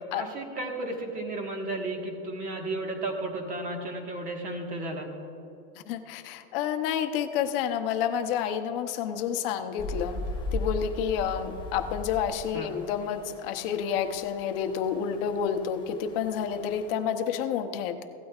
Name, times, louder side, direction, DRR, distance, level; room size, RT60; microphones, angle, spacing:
voice 1, 0.0-5.1 12.5-12.7, right 2 dB, 20° right, 2 dB, 1.5 m, -33 dB
voice 2, 5.9-10.2 10.5-18.0, left 8 dB, 50° left, 7 dB, 0.9 m, -29 dB
sound 1, 9.8-17.0, left 1 dB, 15° left, 0.9 m, -38 dB
16.5 x 12.5 x 2.4 m, 3.0 s
supercardioid pair, 170°, 35 cm